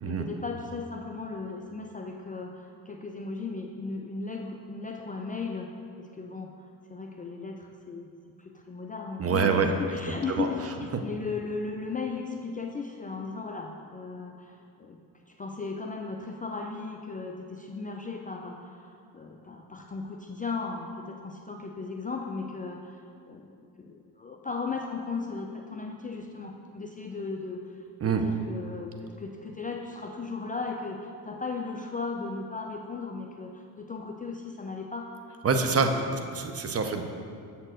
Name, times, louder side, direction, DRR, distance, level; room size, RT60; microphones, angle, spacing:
voice 1, 0.0-5.7 6.0-6.5 6.9-8.1 8.4-15.0 15.3-23.0 23.3-35.2 35.7-36.2, left 4 dB, 20° left, 1 dB, 0.4 m, -36 dB
voice 2, 9.2-9.7 10.3-10.5 10.9-11.0 28.0-28.2 35.4-35.9 36.3-37.0, right 5 dB, 30° right, 6 dB, 0.7 m, -25 dB
7.2 x 4.4 x 6.4 m, 2.4 s
supercardioid pair, 85°, 47 cm